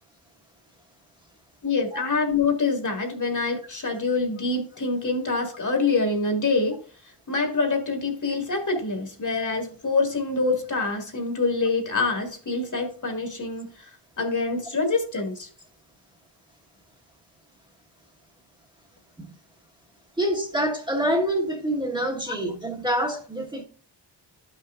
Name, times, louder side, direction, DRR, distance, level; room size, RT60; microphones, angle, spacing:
voice 1, 1.6-6.8 7.3-13.9 14.2-15.5 22.3-22.4, left 3 dB, 45° left, 1.9 m, -25 dB
voice 2, 20.2-23.6, equal, 10° right, 1.3 m, -26 dB
13.0 x 5.7 x 2.4 m
wide cardioid pair, 115°, 41 cm